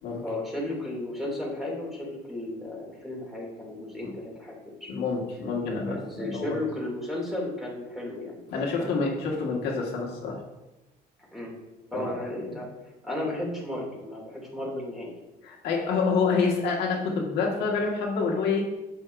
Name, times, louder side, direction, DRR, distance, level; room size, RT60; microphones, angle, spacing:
voice 1, 0.2-4.9 5.8-8.9 11.3-11.5 11.9-12.7 13.0-15.1, left 1 dB, ahead, -3 dB, 2.6 m, -34 dB
voice 2, 4.9-6.6 8.5-10.4 11.9-12.1 15.4-18.6, left 4 dB, 80° left, -2 dB, 1.7 m, -27 dB
7.9 x 7.6 x 2.6 m, 1.0 s
cardioid pair, 110°, 17 cm